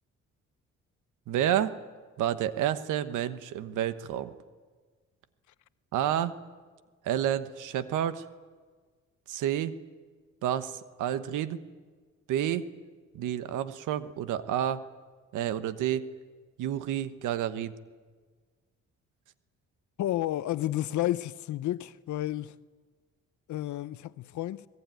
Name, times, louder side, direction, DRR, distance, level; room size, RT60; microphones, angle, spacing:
voice 1, 1.3-1.7 2.2-4.3 5.9-6.3 7.0-8.2 9.3-9.7 10.4-11.6 12.3-12.6 13.1-14.8 15.3-16.1 16.6-17.7, right 11 dB, 85° right, 1.2 m, -29 dB
voice 2, 20.0-22.6 23.5-24.6, left 14 dB, 70° left, 0.7 m, -31 dB
24.5 x 20.5 x 9.3 m
cardioid pair, 90°, 30 cm